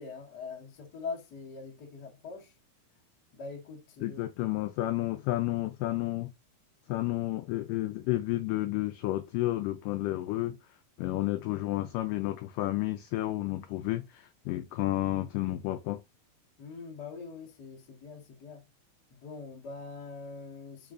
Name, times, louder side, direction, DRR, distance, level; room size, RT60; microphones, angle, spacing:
voice 1, 0.0-2.5 3.3-4.2 4.5-4.6 16.6-18.6 19.1-20.9, left 4 dB, 70° left, 0.9 m, -43 dB
voice 2, 4.0-6.3 6.9-10.6 11.0-16.0, left 16 dB, 90° left, 1.9 m, -31 dB
4.9 x 3.9 x 2.4 m
omnidirectional pair, 4.3 m